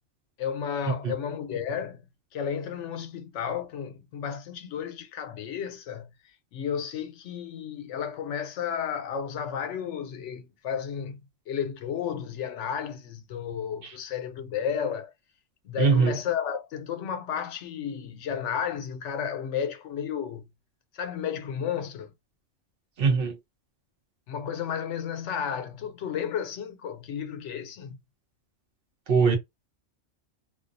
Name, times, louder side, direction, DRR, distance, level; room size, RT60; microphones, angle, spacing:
voice 1, 0.4-2.1 2.3-6.1 6.5-11.2 11.5-15.1 15.6-20.5 20.9-22.1 24.3-28.0, left 8 dB, 80° left, 0.9 m, -32 dB
voice 2, 15.8-16.2 23.0-23.4 29.1-29.4, right 5 dB, 55° right, 0.8 m, -22 dB
2.3 x 2.3 x 2.5 m
omnidirectional pair, 1.2 m